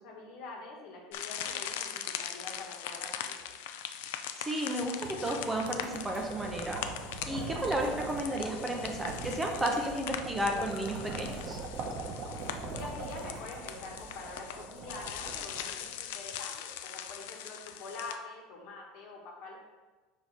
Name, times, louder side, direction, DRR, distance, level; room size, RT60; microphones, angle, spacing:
voice 1, 0.0-3.5 12.7-19.6, left 3 dB, 60° left, 0 dB, 1.3 m, -45 dB
sound 1, 1.1-18.2, left 9 dB, 85° left, 0.4 m, -41 dB
voice 2, 4.4-6.9 7.3-11.6, right 1 dB, 10° right, 1 dB, 0.6 m, -33 dB
sound 2, 5.0-6.4 6.7-8.2 8.6-10.0 10.5-11.9 12.2-14.0, right 2 dB, 70° right, 1.0 m, -47 dB
sound 3, 5.2-16.2, right 3 dB, 45° right, 0.9 m, -42 dB
4.9 x 4.8 x 4.1 m, 1.3 s
supercardioid pair, 150°, 0 cm